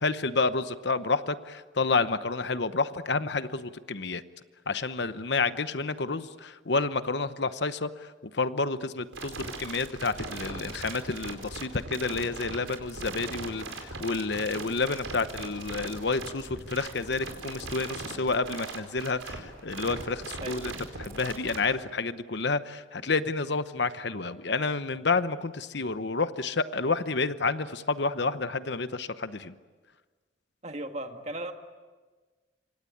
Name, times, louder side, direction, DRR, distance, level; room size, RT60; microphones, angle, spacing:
voice 1, 0.0-4.2 4.7-7.9 8.3-20.7 21.0-29.5, left 4 dB, 60° left, 12 dB, 0.9 m, -29 dB
sound 1, 9.1-21.6, right 3 dB, 85° right, 4.8 m, -39 dB
voice 2, 30.6-31.5, right 1 dB, 35° right, 5 dB, 1.9 m, -36 dB
27.0 x 25.5 x 8.6 m, 1.4 s
head